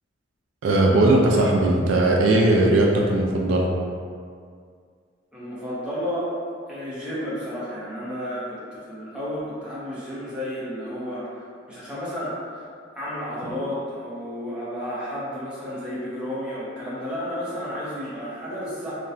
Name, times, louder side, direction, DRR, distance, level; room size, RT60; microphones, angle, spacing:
voice 1, 0.6-3.7, right 2 dB, 80° right, -2 dB, 0.4 m, -18 dB
voice 2, 5.3-6.3 6.7-11.4 11.7-12.7 12.9-18.9, equal, 5° right, -10 dB, 0.7 m, -32 dB
2.8 x 2.1 x 2.4 m, 2.1 s
head